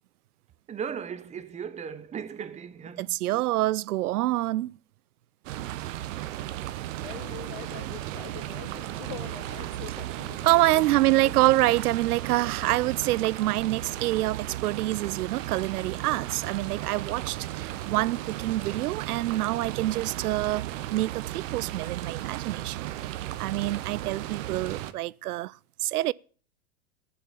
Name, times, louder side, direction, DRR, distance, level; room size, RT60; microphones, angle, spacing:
voice 1, 0.7-3.2, right 7 dB, 15° right, 0.9 m, -37 dB
voice 2, 3.0-4.8 10.4-23.1 23.4-25.6 25.8-26.1, right 16 dB, 80° right, 0.6 m, -26 dB
sound 1, 5.4-24.9, right 14 dB, 55° right, 1.1 m, -35 dB
voice 3, 7.0-11.3, left 15 dB, 50° left, 0.8 m, -44 dB
15.5 x 7.1 x 7.3 m
hypercardioid pair, 125°, 45 cm